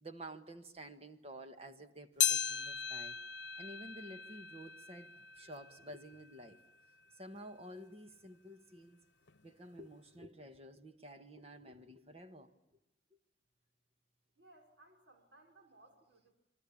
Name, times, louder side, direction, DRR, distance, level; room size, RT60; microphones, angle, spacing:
voice 1, 0.0-3.2 3.6-6.6 7.2-9.0 9.4-12.5, right 1 dB, 35° right, 8 dB, 1.6 m, -51 dB
sound 1, 2.2-6.8 7.3-7.4 8.2-8.3 9.3-9.4, left 9 dB, 75° left, 0.9 m, -38 dB
voice 2, 14.4-16.3, right 2 dB, 90° right, 3 dB, 5.1 m, -63 dB
28.0 x 23.0 x 8.6 m, 0.87 s
head